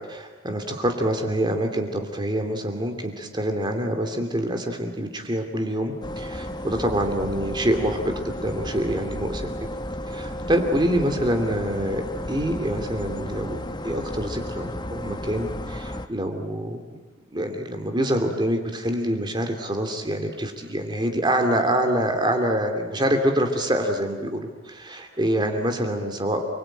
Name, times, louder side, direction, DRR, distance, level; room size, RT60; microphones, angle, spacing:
voice 1, 0.0-9.5 10.1-12.0 12.3-13.6 13.8-17.0 17.3-26.4, right 1 dB, 25° right, 4 dB, 2.7 m, -26 dB
sound 1, 6.0-16.1, left 1 dB, 20° left, 1.0 m, -33 dB
29.5 x 22.0 x 9.0 m, 1.3 s
head